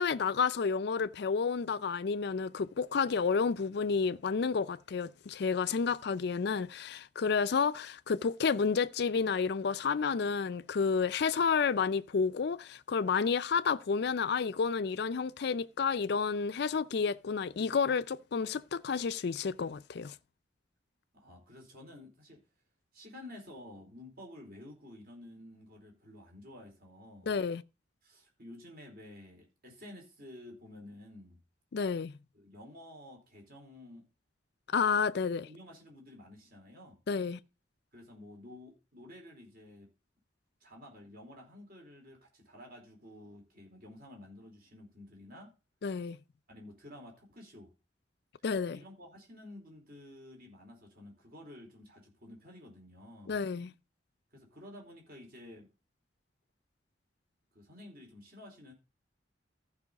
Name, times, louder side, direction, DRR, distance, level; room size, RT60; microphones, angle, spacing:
voice 1, 0.0-20.1 27.3-27.6 31.7-32.2 34.7-35.5 37.1-37.4 45.8-46.2 48.4-48.8 53.3-53.7, left 5 dB, 60° left, 0.4 m, -30 dB
voice 2, 21.1-22.4 22.9-27.3 28.0-31.4 32.3-34.0 35.4-37.0 37.9-39.9 40.6-45.5 46.5-47.7 48.7-53.4 54.3-55.7 57.5-58.7, left 1 dB, 55° right, 4.4 m, -51 dB
14.5 x 5.5 x 4.0 m
head